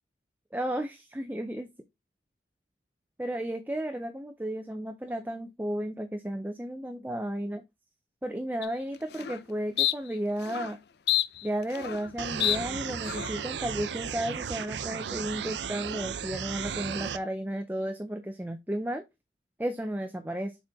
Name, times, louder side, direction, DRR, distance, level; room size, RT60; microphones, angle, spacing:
voice 1, 0.5-1.7 3.2-7.6 8.2-10.8 11.4-19.0 19.6-20.5, right 1 dB, 10° right, 0.5 m, -33 dB
sound 1, 8.6-8.7 9.1-9.4 9.8-9.9 10.4-10.7 11.1-12.1 12.4-12.6 13.0-13.4, left 13 dB, 65° left, 0.4 m, -28 dB
sound 2, 12.2-17.2, right 7 dB, 75° right, 0.5 m, -35 dB
6.6 x 4.2 x 3.5 m
head